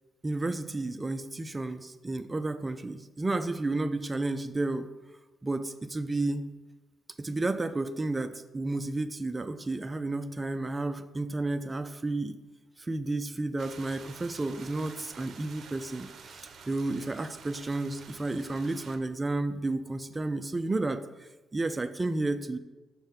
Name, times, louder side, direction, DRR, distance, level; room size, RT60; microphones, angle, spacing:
voice 1, 0.2-4.9 5.4-6.5 7.2-12.4 12.8-22.6, right 2 dB, 20° right, 10 dB, 0.4 m, -32 dB
sound 1, 13.6-19.0, right 5 dB, 55° right, 0.7 m, -49 dB
6.3 x 3.5 x 5.8 m, 1.1 s
cardioid pair, 90°, 0 cm